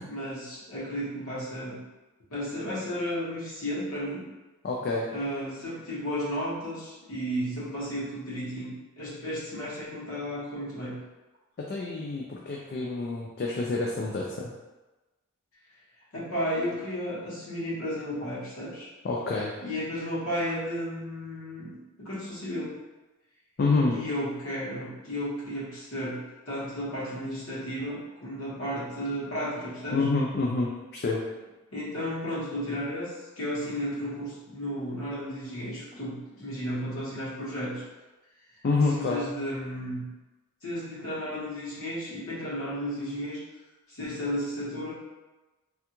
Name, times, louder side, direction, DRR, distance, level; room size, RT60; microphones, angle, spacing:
voice 1, 0.1-1.8 2.3-4.2 5.1-11.0 16.1-18.9 19.6-22.7 23.9-26.2 26.5-30.0 31.7-37.8 39.0-40.0 40.6-43.4 43.9-44.9, equal, 75° left, -8 dB, 1.2 m, -33 dB
voice 2, 4.6-5.1 11.6-14.5 19.0-19.6 23.6-24.0 29.9-31.2 38.6-39.2, left 3 dB, 45° left, -2 dB, 0.3 m, -27 dB
3.4 x 2.3 x 2.9 m, 1.1 s
head